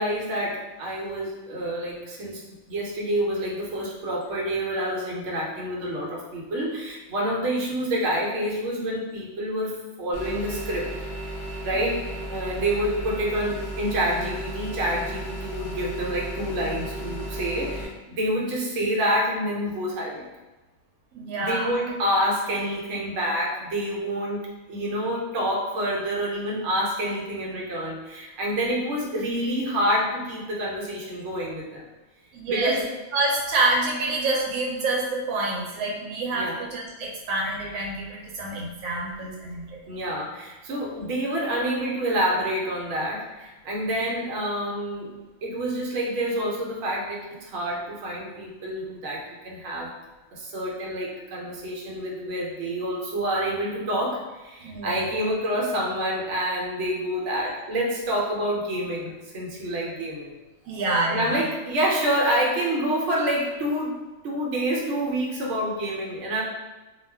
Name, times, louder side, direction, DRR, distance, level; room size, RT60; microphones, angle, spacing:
voice 1, 0.0-10.9 11.6-20.3 21.4-24.4 24.7-31.9 32.5-32.8 36.3-36.6 39.9-45.1 45.4-49.9 50.3-60.3 61.1-64.0 64.2-66.4, equal, 65° right, -3 dB, 1.0 m, -27 dB
sound 1, 10.1-17.8, right 1 dB, 30° left, 0.5 m, -34 dB
voice 2, 21.1-21.7 32.3-32.8 33.1-40.0 54.6-55.0 60.7-61.4, right 2 dB, 90° right, -1 dB, 1.0 m, -27 dB
2.4 x 2.2 x 3.3 m, 1.1 s
omnidirectional pair, 1.4 m